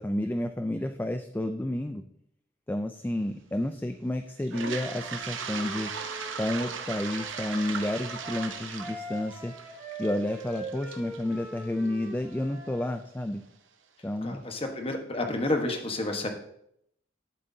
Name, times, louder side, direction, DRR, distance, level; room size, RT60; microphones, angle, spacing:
voice 1, 0.0-2.0 2.7-5.9 6.4-9.5 10.0-13.4 14.0-14.4, left 1 dB, 10° left, 7 dB, 0.3 m, -31 dB
Toilet flush, 4.4-12.4, right 6 dB, 80° right, 0.9 m, -38 dB
Wind instrument woodwind instrument, 4.9-12.9, right 2 dB, 15° right, 2.8 m, -43 dB
voice 2, 14.2-16.3, left 2 dB, 30° left, 4 dB, 1.2 m, -30 dB
11.5 x 7.8 x 2.7 m, 0.73 s
head